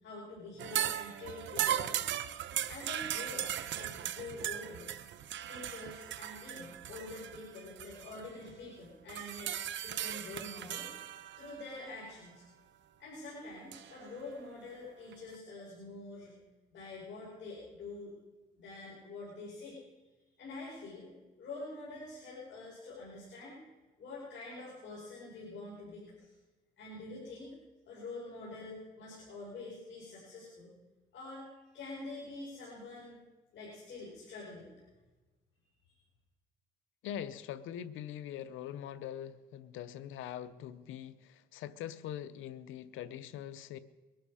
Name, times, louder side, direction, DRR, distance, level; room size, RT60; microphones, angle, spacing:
voice 1, 0.0-2.1 2.7-4.9 5.5-9.5 9.8-10.9 11.4-12.4 13.0-16.3 16.7-18.1 18.6-19.8 20.4-21.1 21.4-23.6 24.0-26.3 26.8-27.6 27.9-30.7 31.1-33.2 33.5-34.7, left 2 dB, 70° left, -6 dB, 5.2 m, -46 dB
sound 1, 0.6-8.5 9.1-11.9 13.7-13.9 15.1-15.2, right 11 dB, 70° right, 0.8 m, -38 dB
voice 2, 37.0-43.8, left 10 dB, 90° left, 14 dB, 0.8 m, -43 dB
22.0 x 12.0 x 4.9 m, 1.2 s
cardioid pair, 90°, 20 cm